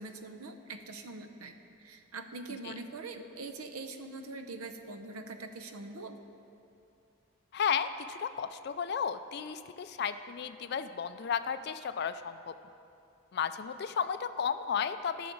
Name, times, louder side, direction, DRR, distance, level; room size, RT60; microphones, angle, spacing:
voice 1, 0.0-1.6 1.8-6.2, right 3 dB, 90° right, 7 dB, 0.7 m, -43 dB
voice 2, 7.5-12.5 13.3-15.3, left 7 dB, 50° left, 11 dB, 0.3 m, -33 dB
13.5 x 5.9 x 3.9 m, 2.6 s
head